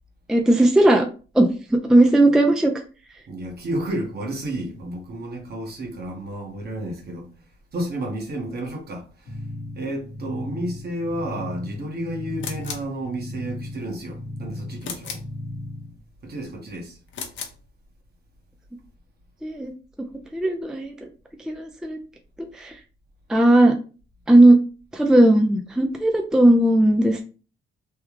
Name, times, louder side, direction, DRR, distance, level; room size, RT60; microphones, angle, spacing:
voice 1, 0.3-1.1 1.3-2.7 19.4-19.7 20.3-21.1 21.5-22.0 22.4-22.7 23.3-23.7 24.3-24.6 24.9-27.2, right 1 dB, 5° right, 0.4 m, -17 dB
voice 2, 3.3-7.3 7.7-9.4 9.7-15.2 16.2-17.0, right 1 dB, 50° right, 1.3 m, -31 dB
sound 1, 9.3-16.0, left 1 dB, 55° left, 1.1 m, -36 dB
sound 2, 12.4-12.9 14.8-15.3 17.1-17.6, left 6 dB, 70° left, 0.7 m, -35 dB
3.4 x 2.3 x 3.1 m
cardioid pair, 90°, 20 cm